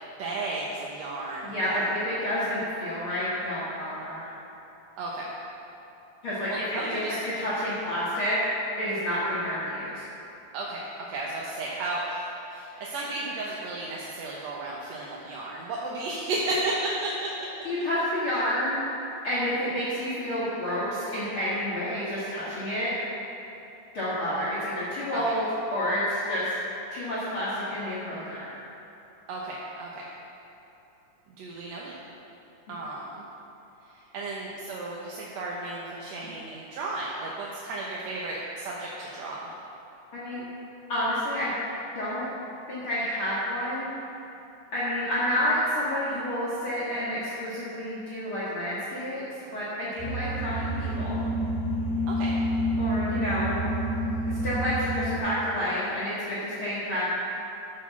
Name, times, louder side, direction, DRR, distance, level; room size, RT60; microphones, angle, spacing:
voice 1, 0.2-1.9 5.0-5.3 6.5-7.2 10.5-17.1 25.1-25.2 29.3-30.0 31.4-32.0 32.7-33.1 34.1-39.6 52.1-52.3, right 2 dB, 65° right, -4 dB, 2.1 m, -33 dB
voice 2, 1.4-4.3 6.2-8.4 8.8-10.1 17.6-18.8 19.2-22.9 23.9-25.4 25.7-26.6 26.9-28.5 40.1-40.4 40.9-41.5 41.9-42.3 42.7-43.9 44.7-49.2 49.5-51.2 52.8-53.7 54.3-57.1, equal, 45° left, -10 dB, 2.6 m, -29 dB
sound 1, 50.0-55.2, equal, 75° left, 3.1 m, -28 dB
12.5 x 6.8 x 7.2 m, 3.0 s
omnidirectional pair, 3.6 m